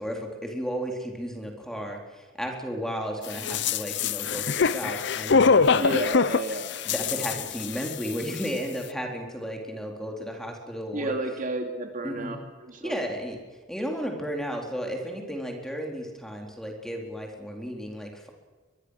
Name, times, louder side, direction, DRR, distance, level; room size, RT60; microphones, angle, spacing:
voice 1, 0.0-6.0 6.9-11.2 12.0-12.4 12.8-13.4 13.7-18.3, equal, 5° left, 1 dB, 4.1 m, -34 dB
sound 1, 3.3-8.1 8.4-8.5, left 5 dB, 65° left, 0.8 m, -24 dB
voice 2, 5.8-6.7 7.1-7.2 10.9-12.4 12.6-13.0, right 2 dB, 45° right, 4 dB, 2.9 m, -31 dB
23.0 x 23.0 x 6.6 m, 1.3 s
head